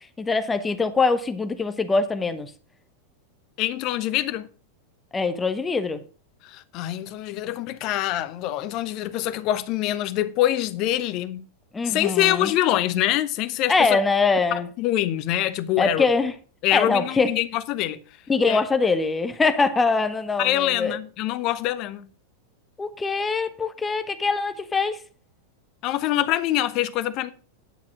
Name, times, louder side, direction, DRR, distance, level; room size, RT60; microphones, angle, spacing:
voice 1, 0.0-2.5 5.1-6.0 11.7-12.5 13.7-14.7 15.8-16.3 16.7-17.4 18.3-21.0 22.8-25.0, left 4 dB, 15° left, 1.1 m, -23 dB
voice 2, 3.6-4.5 6.4-11.4 11.8-14.0 14.5-16.1 16.6-18.0 18.5-18.6 20.4-22.1 25.8-27.3, left 13 dB, 40° left, 1.0 m, -25 dB
10.5 x 7.3 x 6.2 m
figure-of-eight pair, 90°, 0 cm